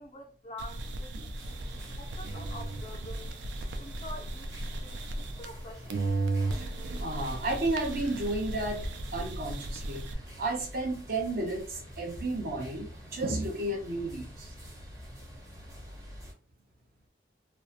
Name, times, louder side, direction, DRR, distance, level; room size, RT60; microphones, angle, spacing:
voice 1, 0.0-3.4 3.8-4.5 4.8-6.0, left 1 dB, 30° left, 0.3 m, -47 dB
sound 1, 0.6-5.6 5.9-10.1, right 2 dB, 75° right, 0.4 m, -36 dB
sound 2, 1.4-16.3, equal, 20° right, 0.7 m, -46 dB
voice 2, 7.0-10.1 10.4-14.5, right 2 dB, 55° right, 0.7 m, -33 dB
2.7 x 2.1 x 2.5 m
head